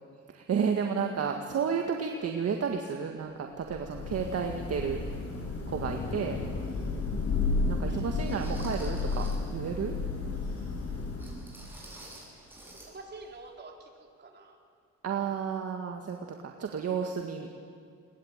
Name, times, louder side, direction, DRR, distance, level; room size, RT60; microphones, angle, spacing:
voice 1, 0.3-5.0 5.7-6.4 7.7-9.3 9.5-9.9 15.0-16.2 16.4-17.5, right 6 dB, 55° right, 3 dB, 1.9 m, -31 dB
Thunder / Rain, 3.6-11.7, left 3 dB, 55° left, 6.8 m, -32 dB
sound 1, 6.3-6.4 7.1-7.2 8.3-9.5 11.2-12.9 13.2-13.4 13.8-13.9, right 1 dB, 5° right, 8.0 m, -48 dB
voice 2, 7.9-8.3 12.7-14.6, right 3 dB, 35° right, 1 dB, 4.3 m, -48 dB
21.0 x 20.0 x 9.1 m, 2.1 s
cardioid pair, 90°, 30 cm